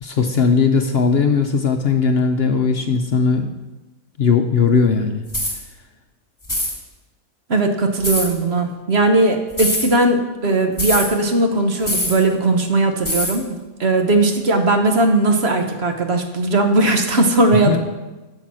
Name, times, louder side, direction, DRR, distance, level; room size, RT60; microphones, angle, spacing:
voice 1, 0.0-3.5 4.2-5.3 17.6-17.8, left 5 dB, 55° left, 6 dB, 0.8 m, -18 dB
sound 1, 5.3-5.6 6.4-6.8 8.0-8.3 9.5-9.9 10.8-11.1 11.9-12.2 13.1-13.4, left 1 dB, 15° left, 2.4 m, -22 dB
voice 2, 7.5-13.5 13.8-17.8, right 2 dB, 50° right, 5 dB, 1.2 m, -18 dB
11.5 x 7.0 x 6.1 m, 1.2 s
omnidirectional pair, 1.5 m